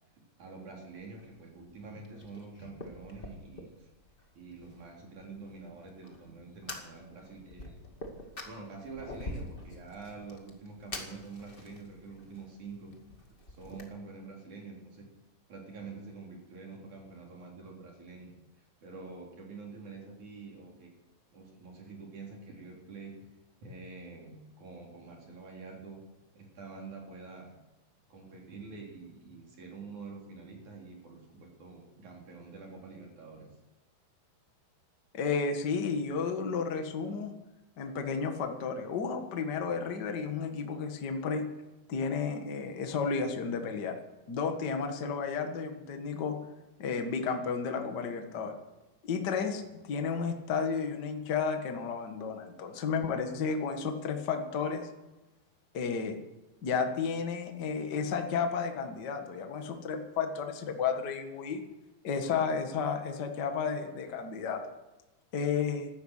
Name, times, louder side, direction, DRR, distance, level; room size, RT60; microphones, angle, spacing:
voice 1, 0.1-3.9 4.3-7.8 8.4-12.9 13.5-15.1 15.5-18.3 18.8-20.9 21.3-23.2 23.6-26.0 26.3-27.5 28.1-33.5, right 4 dB, 45° right, -1 dB, 5.0 m, -47 dB
Fire, 0.9-13.8, left 1 dB, 30° left, 1.1 m, -47 dB
voice 2, 35.1-37.3 37.8-41.4 41.9-44.0 44.3-46.3 46.8-48.5 49.0-54.9 55.7-56.2 56.6-61.6 62.0-64.6 65.3-65.9, left 5 dB, 55° left, 5 dB, 1.1 m, -32 dB
16.0 x 13.0 x 6.6 m, 1.0 s
omnidirectional pair, 4.8 m